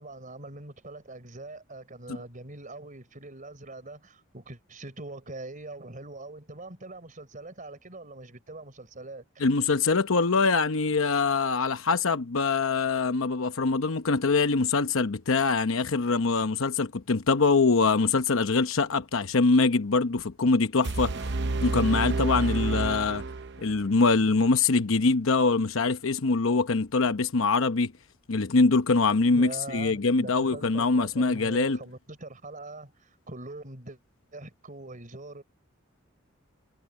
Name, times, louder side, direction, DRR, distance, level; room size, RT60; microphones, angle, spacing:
voice 1, 0.0-9.5 29.3-34.0 34.3-35.4, right 2 dB, 40° right, 3.8 m, -42 dB
voice 2, 9.4-21.3 21.6-23.2 23.6-27.9 28.3-31.8, left 4 dB, 85° left, 0.9 m, -24 dB
sound 1, 20.8-23.8, right 2 dB, 60° right, 0.8 m, -29 dB
head